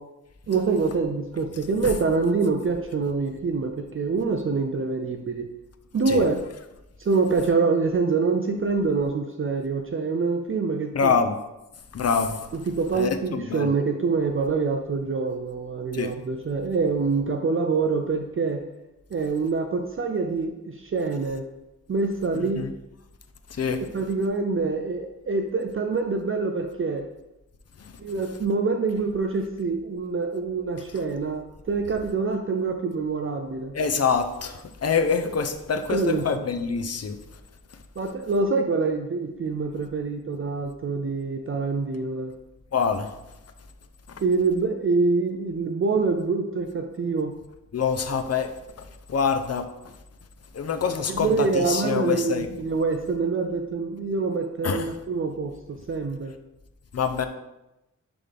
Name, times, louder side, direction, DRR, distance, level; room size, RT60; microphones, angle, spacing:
voice 1, 0.5-5.5 5.9-6.4 7.0-11.1 12.5-18.6 19.1-21.4 21.9-22.6 23.9-27.1 28.0-33.7 35.2-35.3 35.9-36.5 38.0-42.3 44.2-47.3 51.1-56.3, right 4 dB, 45° right, 4 dB, 0.5 m, -25 dB
voice 2, 10.9-11.4 11.9-12.4 13.0-13.7 15.9-16.1 22.6-22.7 23.6-23.8 33.7-37.2 42.7-43.1 47.7-48.5 49.1-49.6 50.5-52.5 54.6-54.9 56.9-57.3, left 6 dB, 55° left, 8 dB, 0.7 m, -25 dB
10.5 x 3.8 x 3.5 m, 0.95 s
wide cardioid pair, 110°, 31 cm